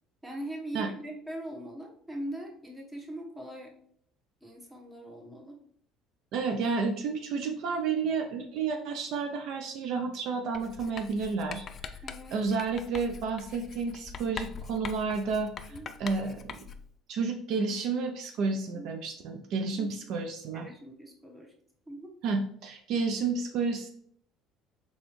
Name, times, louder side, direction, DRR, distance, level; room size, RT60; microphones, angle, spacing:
voice 1, 0.2-3.7 4.4-5.6 12.0-12.4 15.7-15.9 18.7-18.9 19.7-19.9 20.5-21.5 21.9-22.1, right 1 dB, 15° right, 1 dB, 1.2 m, -41 dB
voice 2, 6.3-11.7 12.3-16.6 17.1-20.7 22.2-23.9, right 4 dB, 65° right, 4 dB, 0.5 m, -31 dB
Writing, 10.5-16.9, left 6 dB, 40° left, 0.4 m, -43 dB
4.1 x 3.6 x 3.1 m, 0.65 s
supercardioid pair, 90°, 0 cm